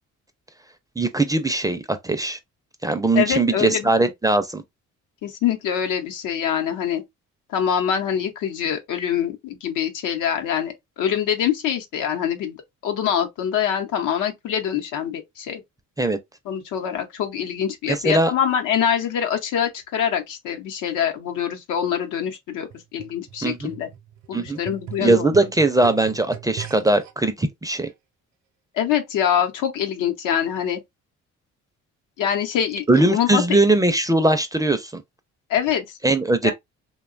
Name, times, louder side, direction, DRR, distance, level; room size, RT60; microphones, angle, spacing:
voice 1, 1.0-2.4 2.8-4.6 16.0-16.2 17.9-18.3 23.4-23.7 24.3-24.6 25.0-27.9 32.9-35.0 36.0-36.5, right 2 dB, 10° right, 0.4 m, -20 dB
voice 2, 3.1-4.1 5.2-7.0 7.5-12.6 12.8-15.6 16.5-23.9 24.3-25.4 28.7-30.8 32.2-33.4 35.5-36.0 36.4-36.5, left 9 dB, 85° left, 0.8 m, -24 dB
sound 1, 22.7-27.1 27.9-28.0, right 10 dB, 65° right, 0.7 m, -39 dB
2.8 x 2.2 x 2.4 m
cardioid pair, 90°, 30 cm